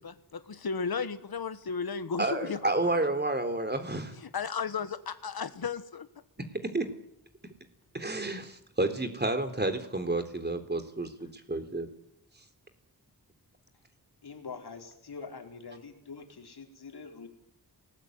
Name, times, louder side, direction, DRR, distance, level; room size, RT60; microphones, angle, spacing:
voice 1, 0.0-2.7 4.2-6.1, left 5 dB, 70° left, 11 dB, 1.4 m, -34 dB
voice 2, 2.2-4.1 6.4-6.9 7.9-11.9, right 2 dB, 25° right, 8 dB, 3.7 m, -30 dB
voice 3, 14.2-17.3, left 5 dB, 85° left, 3 dB, 4.6 m, -44 dB
28.5 x 19.5 x 9.4 m, 0.76 s
wide cardioid pair, 110°, 38 cm